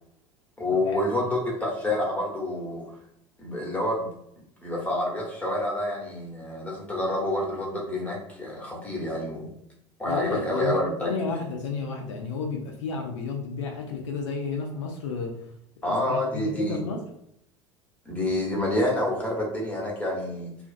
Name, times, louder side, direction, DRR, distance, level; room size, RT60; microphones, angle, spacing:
voice 1, 0.6-3.0 3.4-4.1 4.6-9.5 10.0-11.1 15.8-16.8 18.1-20.5, left 1 dB, 10° left, -3 dB, 0.9 m, -28 dB
voice 2, 10.0-10.8 11.0-15.4 15.8-17.0, left 4 dB, 70° left, 1 dB, 0.4 m, -32 dB
2.5 x 2.3 x 2.4 m, 0.76 s
figure-of-eight pair, 70°, 16 cm